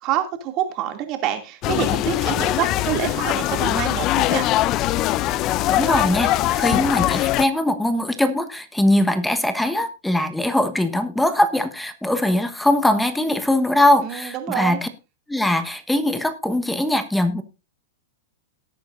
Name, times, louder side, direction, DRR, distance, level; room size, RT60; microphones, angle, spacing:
voice 1, 0.0-4.5 14.0-14.8, right 10 dB, 40° right, 5 dB, 2.5 m, -26 dB
sound 1, 1.6-7.5, left 15 dB, 40° left, 0.5 m, -21 dB
voice 2, 5.7-14.9 15.3-17.4, left 1 dB, 5° left, 10 dB, 1.2 m, -21 dB
18.0 x 8.8 x 2.6 m, 0.30 s
hypercardioid pair, 115°, 0 cm